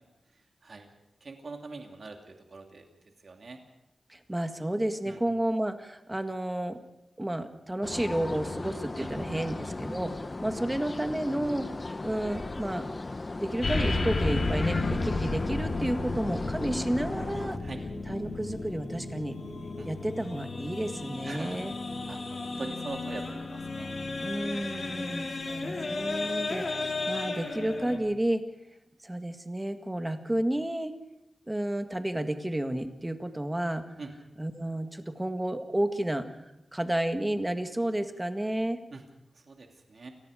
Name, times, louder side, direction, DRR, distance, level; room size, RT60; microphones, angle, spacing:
voice 1, 1.2-2.9 3.2-3.6 5.0-5.2 9.0-9.1 9.4-9.5 17.6-17.8 19.8-19.9 21.2-21.6 22.1-23.9 24.4-24.5 34.0-34.1 38.9-39.0 39.5-40.1, right 3 dB, 55° right, 3 dB, 2.6 m, -42 dB
voice 2, 4.1-6.8 7.2-10.1 10.4-11.7 12.0-12.9 13.4-17.6 18.1-19.4 19.8-21.7 24.2-28.4 29.0-30.9 31.5-33.8 34.4-36.3 36.7-38.8, right 1 dB, 15° right, 7 dB, 1.8 m, -31 dB
sound 1, 7.8-17.6, left 2 dB, 30° left, 0.9 m, -37 dB
sound 2, 13.6-28.0, left 3 dB, 50° left, 4.2 m, -33 dB
29.0 x 19.0 x 5.1 m, 0.89 s
wide cardioid pair, 110°, 0 cm